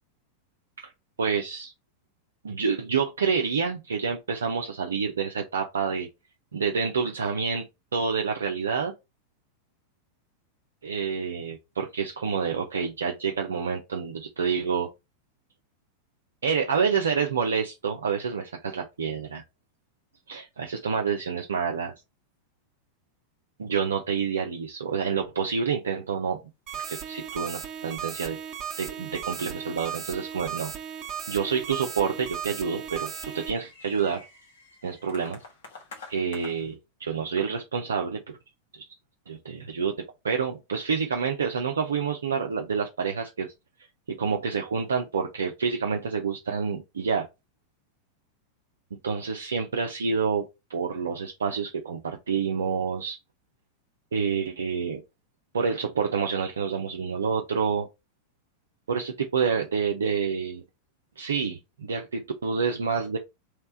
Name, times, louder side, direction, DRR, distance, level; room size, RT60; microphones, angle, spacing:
voice 1, 1.2-1.7 2.4-6.1 6.5-7.7 7.9-8.9 10.8-14.9 16.4-19.4 20.3-21.9 23.6-26.4 26.7-28.4 28.8-30.7 31.3-34.3 34.8-35.4 36.1-38.4 38.7-38.9 39.3-43.5 44.1-47.3 49.0-50.4 50.7-53.2 54.1-55.0 55.5-57.9 58.9-60.6 61.2-63.2, right 6 dB, 70° right, 0.7 m, -28 dB
sound 1, 25.8-26.2 26.5-26.7 26.9-27.2 27.4-27.8 28.1-28.6 29.2-29.3 29.9-30.3 31.1-31.9 32.2-36.7, left 3 dB, 60° left, 1.4 m, -49 dB
sound 2, 26.7-33.5, right 8 dB, 30° right, 1.2 m, -36 dB
3.4 x 3.2 x 4.4 m
figure-of-eight pair, 90°, 0 cm